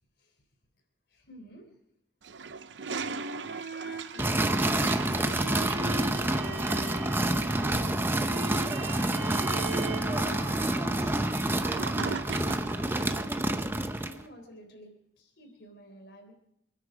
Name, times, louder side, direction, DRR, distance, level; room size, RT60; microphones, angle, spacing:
voice 1, 1.1-1.7 2.8-3.2 3.8-6.9 7.6-11.3 13.0-13.4 14.0-16.3, equal, 65° left, 3 dB, 3.8 m, -49 dB
Toilet flush, 2.2-12.9, right 5 dB, 85° right, 0.7 m, -41 dB
sound 1, 2.7-13.4, right 2 dB, 65° right, 2.3 m, -41 dB
sound 2, 4.2-14.2, right 1 dB, 10° right, 0.7 m, -28 dB
28.0 x 10.0 x 5.0 m, 0.79 s
head